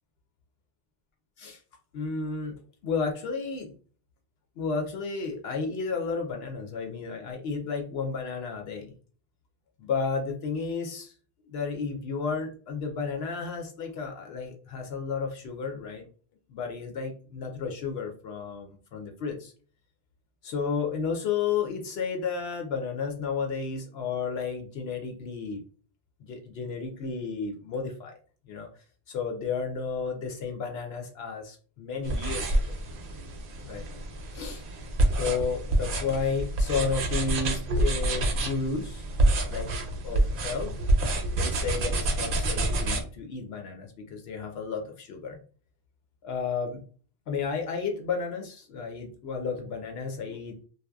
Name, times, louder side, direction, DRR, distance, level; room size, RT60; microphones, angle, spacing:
voice 1, 1.9-3.8 4.6-8.9 9.8-11.1 11.5-16.1 16.5-19.5 20.4-25.6 26.3-28.1 28.5-28.7 29.1-32.7 33.6-33.9 34.3-34.6 35.2-39.0 39.4-39.7 40.0-40.7 41.3-45.4 46.2-46.8 47.3-50.6, left 5 dB, 75° left, 3 dB, 0.8 m, -32 dB
sound 1, 32.0-43.0, right 1 dB, 60° right, 0.7 m, -27 dB
2.7 x 2.1 x 2.2 m, 0.40 s
omnidirectional pair, 1.1 m